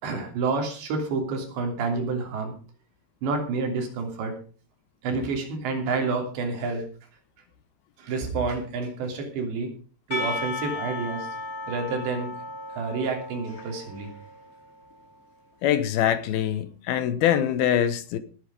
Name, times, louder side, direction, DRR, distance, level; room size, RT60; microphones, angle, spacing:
voice 1, 0.0-2.6 3.2-4.4 5.0-6.9 8.0-9.7 10.1-11.3 11.7-12.3 12.7-14.1, right 4 dB, 80° right, 5.3 m, -29 dB
Percussion / Church bell, 10.1-15.1, left 2 dB, 20° left, 3.6 m, -35 dB
voice 2, 15.6-18.2, left 10 dB, 70° left, 2.6 m, -23 dB
18.5 x 8.4 x 5.1 m
omnidirectional pair, 5.0 m